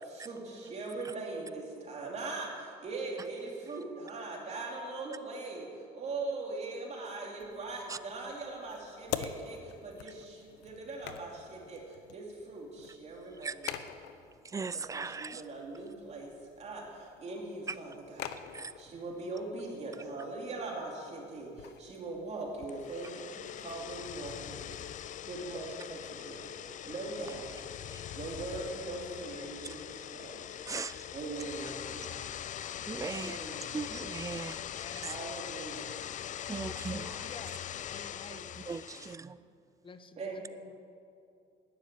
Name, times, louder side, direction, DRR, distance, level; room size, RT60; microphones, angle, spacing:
voice 1, 0.0-13.7 14.9-17.9 18.2-24.7 25.2-26.5 26.8-27.5 28.1-30.4 31.1-32.3 33.0-33.6 35.0-36.0 38.3-38.5 39.4-39.5 40.2-40.4, right 3 dB, 40° right, -1 dB, 2.9 m, -41 dB
sound 1, 7.4-25.0, left 10 dB, 90° left, 0.8 m, -47 dB
voice 2, 13.4-13.9 14.4-15.4 17.7-17.8 18.5-18.7 27.9-28.1 30.7-31.1 32.9-33.4 33.7-35.2 36.5-37.3 38.6-39.4, right 4 dB, 20° right, 16 dB, 0.4 m, -39 dB
sound 2, 22.6-39.2, left 10 dB, 45° left, 0.5 m, -42 dB
voice 3, 34.8-35.2 36.6-37.6 37.9-38.5 39.8-40.8, left 5 dB, 30° left, 10 dB, 1.0 m, -50 dB
12.0 x 10.0 x 9.2 m, 2.5 s
cardioid pair, 110°, 17 cm